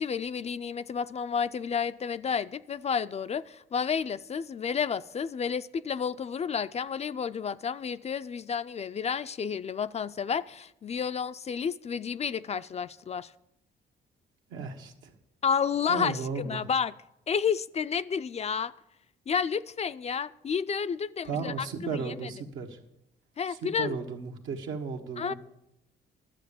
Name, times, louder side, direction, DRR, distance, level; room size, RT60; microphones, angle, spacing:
voice 1, 0.0-13.3 15.4-16.9 17.3-18.7 19.3-22.3 23.4-24.0 25.2-25.3, left 6 dB, 35° left, 14 dB, 0.3 m, -31 dB
voice 2, 14.5-15.1 15.9-16.6 21.2-22.8 23.5-25.3, right 5 dB, 85° right, 3 dB, 1.4 m, -35 dB
12.0 x 7.5 x 6.9 m, 0.84 s
cardioid pair, 90°, 20 cm